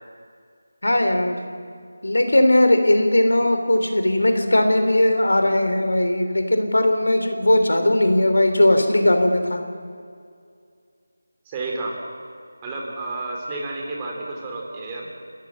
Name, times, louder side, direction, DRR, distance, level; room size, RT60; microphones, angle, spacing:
voice 1, 0.8-1.5 2.0-9.6, left 1 dB, 80° left, 6 dB, 3.2 m, -18 dB
voice 2, 11.4-12.0 12.6-15.1, right 2 dB, 20° right, -1 dB, 3.4 m, -31 dB
29.5 x 14.0 x 7.3 m, 2.2 s
figure-of-eight pair, 165°, 0 cm